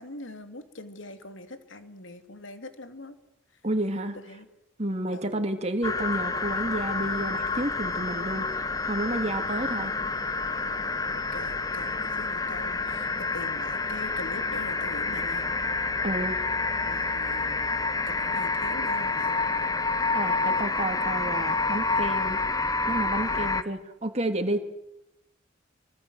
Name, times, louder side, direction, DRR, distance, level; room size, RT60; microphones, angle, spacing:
voice 1, 0.0-3.2 3.5-3.6 4.1-4.5 5.1-5.4 11.1-15.5 16.8-17.6 18.1-19.3, left 2 dB, 80° left, 8 dB, 2.8 m, -43 dB
voice 2, 3.6-4.2 4.8-9.9 16.0-16.4 20.1-22.4 22.9-24.6, right 1 dB, 35° right, 5 dB, 2.8 m, -30 dB
sound 1, 5.8-23.6, left 3 dB, 20° left, 1.1 m, -28 dB
27.5 x 24.5 x 8.1 m, 0.84 s
head